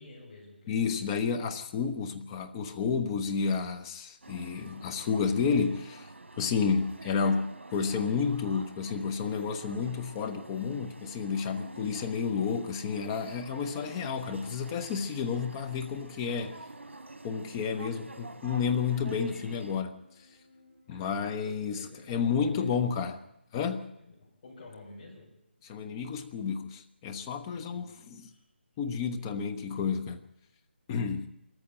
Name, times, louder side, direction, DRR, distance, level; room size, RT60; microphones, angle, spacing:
voice 1, 0.0-0.8 20.9-22.7 24.0-25.3 27.5-28.4, left 2 dB, 40° left, 7.5 m, -50 dB
voice 2, 0.7-6.1 6.4-16.6 17.2-20.0 20.9-23.2 23.5-23.9 25.6-28.3 28.8-30.2 30.9-31.3, left 6 dB, 20° left, 1.0 m, -31 dB
sound 1, 4.2-19.8, right 2 dB, 80° right, 1.2 m, -48 dB
sound 2, 16.2-23.2, left 1 dB, 25° right, 6.3 m, -61 dB
22.0 x 14.0 x 8.9 m
figure-of-eight pair, 160°, 6 cm